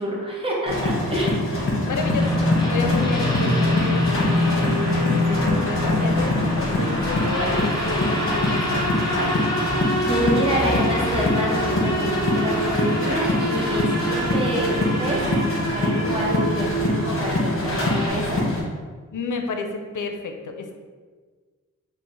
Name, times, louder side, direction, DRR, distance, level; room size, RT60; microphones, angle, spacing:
voice 1, 0.0-1.4 10.1-15.2 15.5-18.4, equal, 15° right, -4 dB, 1.0 m, -27 dB
sound 1, 0.7-18.6, left 1 dB, 40° left, 1.4 m, -25 dB
voice 2, 1.8-8.8 12.7-12.8 19.1-20.8, left 4 dB, 75° left, 5 dB, 0.6 m, -31 dB
sound 2, 1.9-18.1, equal, 15° left, 0.9 m, -25 dB
5.4 x 2.4 x 3.3 m, 1.5 s
wide cardioid pair, 80°, 31 cm